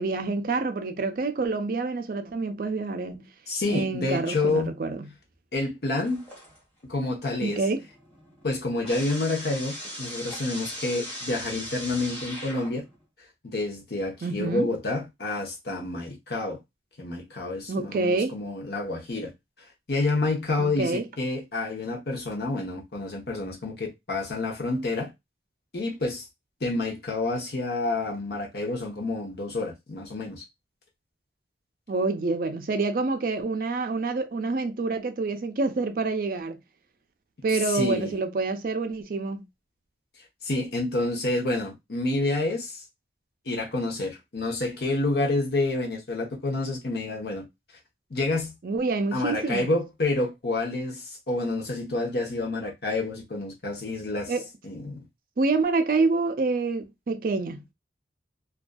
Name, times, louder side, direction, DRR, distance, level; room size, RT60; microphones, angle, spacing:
voice 1, 0.0-3.3 3.7-5.1 7.4-7.8 14.2-14.7 17.7-18.4 20.6-21.0 31.9-36.6 37.4-39.5 48.6-49.7 54.3-54.5 55.4-57.7, right 3 dB, 50° right, 0.4 m, -27 dB
voice 2, 3.5-4.7 5.5-6.3 6.9-7.6 8.4-12.8 13.4-16.6 17.0-19.3 19.9-25.1 25.7-26.2 26.6-30.4 37.5-38.1 40.4-42.8 43.5-47.4 48.1-48.5 49.1-54.3 54.6-55.0, left 2 dB, 65° left, 0.8 m, -28 dB
sound 1, 6.0-6.8 7.2-13.0, equal, 10° left, 1.0 m, -39 dB
2.5 x 2.3 x 2.2 m
head